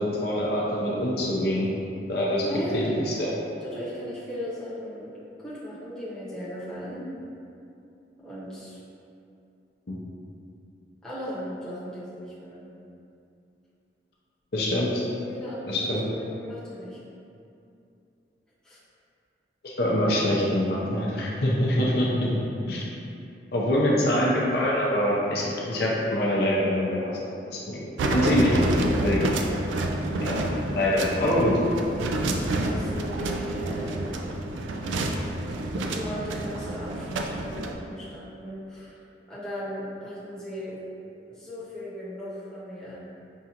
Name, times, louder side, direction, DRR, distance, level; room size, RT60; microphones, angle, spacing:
voice 1, 0.0-1.7 2.1-2.4 2.7-3.3 9.9-10.0 14.5-15.0 15.7-16.0 19.6-22.4 22.7-22.9 23.5-27.1 27.5-27.8 28.1-28.6 29.0-29.3 30.2-30.4 30.7-31.5, left 1 dB, 60° left, -5 dB, 0.6 m, -24 dB
voice 2, 2.4-2.9 3.6-7.1 8.2-8.8 11.0-12.7 15.3-17.0 18.6-18.8 31.0-31.7 32.0-34.3 35.9-39.0 39.3-40.8 41.3-43.0, equal, 5° left, -11 dB, 0.8 m, -37 dB
sound 1, 28.0-37.7, right 1 dB, 90° right, 0.3 m, -28 dB
5.4 x 2.4 x 2.8 m, 2.6 s
head